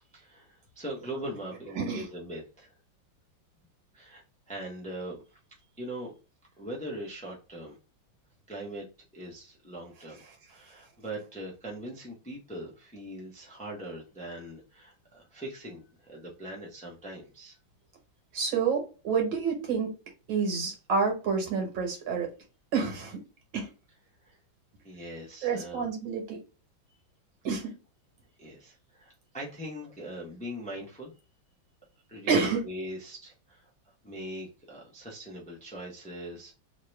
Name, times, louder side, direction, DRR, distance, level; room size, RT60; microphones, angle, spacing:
voice 1, 0.1-2.8 3.9-5.4 5.8-6.1 6.6-7.8 8.5-8.9 9.1-10.2 10.5-17.6 24.2-24.4 24.8-25.9 28.4-31.1 32.1-36.5, right 1 dB, 5° left, -2 dB, 0.6 m, -41 dB
voice 2, 18.3-19.9 20.3-22.3 22.7-23.2 23.5-23.7 25.4-26.4 27.4-27.7 32.3-32.6, right 5 dB, 75° right, 2 dB, 2.0 m, -28 dB
3.6 x 2.9 x 3.2 m, 0.32 s
omnidirectional pair, 2.2 m